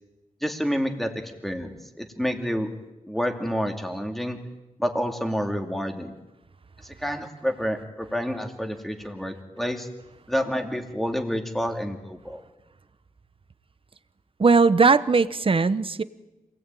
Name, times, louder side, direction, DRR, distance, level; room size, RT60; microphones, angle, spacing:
voice 1, 0.4-1.1 1.4-2.7 3.1-4.4 4.8-6.1 6.8-9.9 10.3-12.4, equal, ahead, 4 dB, 2.6 m, -28 dB
voice 2, 14.4-16.0, right 4 dB, 40° right, 14 dB, 0.9 m, -19 dB
27.0 x 18.5 x 9.1 m, 1.0 s
wide cardioid pair, 135°, 14 cm